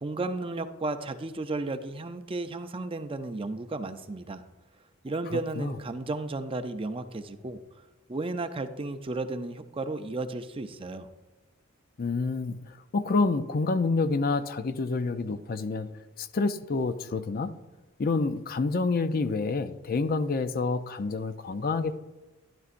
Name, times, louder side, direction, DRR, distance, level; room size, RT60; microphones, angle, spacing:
voice 1, 0.0-4.4 5.0-7.6 8.1-11.1, right 2 dB, 25° right, 0.5 m, -33 dB
voice 2, 5.3-5.8 12.0-15.9 16.2-17.5 18.0-22.0, left 3 dB, 45° left, 0.4 m, -28 dB
12.5 x 11.5 x 2.5 m
head